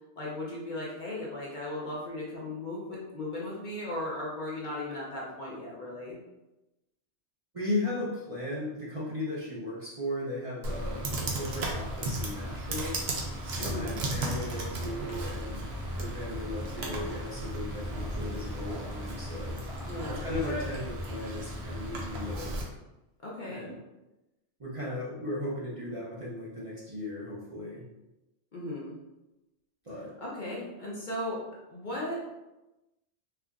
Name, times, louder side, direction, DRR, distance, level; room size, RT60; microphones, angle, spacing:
voice 1, 0.2-6.2 13.6-13.9 19.8-20.3 23.2-23.8 28.5-28.9 30.2-31.4 31.7-32.2, left 1 dB, 50° left, -5 dB, 0.7 m, -37 dB
voice 2, 7.5-13.0 13.5-19.6 20.1-22.6 23.4-23.8 24.6-27.9 29.8-30.2, left 1 dB, 35° right, -7 dB, 0.6 m, -36 dB
Computer keyboard, 10.6-22.6, right 1 dB, 65° right, 0.9 m, -35 dB
sound 1, 11.4-21.5 21.8-21.9 22.2-22.6, left 2 dB, 85° left, 1.2 m, -50 dB
4.4 x 2.5 x 2.3 m, 1.0 s
omnidirectional pair, 1.2 m